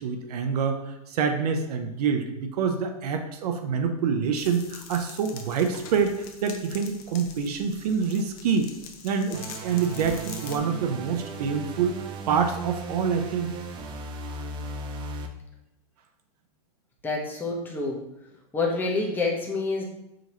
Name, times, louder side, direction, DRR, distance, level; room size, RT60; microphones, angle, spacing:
voice 1, 0.0-8.7 9.0-13.5, right 6 dB, 75° right, 5 dB, 0.6 m, -26 dB
sound 1, 4.3-10.6, left 6 dB, 65° left, 0.7 m, -44 dB
sound 2, 9.3-15.3, right 3 dB, 25° right, 0.4 m, -37 dB
voice 2, 17.0-18.0 18.5-19.8, left 3 dB, 10° left, -2 dB, 0.7 m, -27 dB
5.0 x 2.8 x 2.8 m, 0.85 s
hypercardioid pair, 130°, 20 cm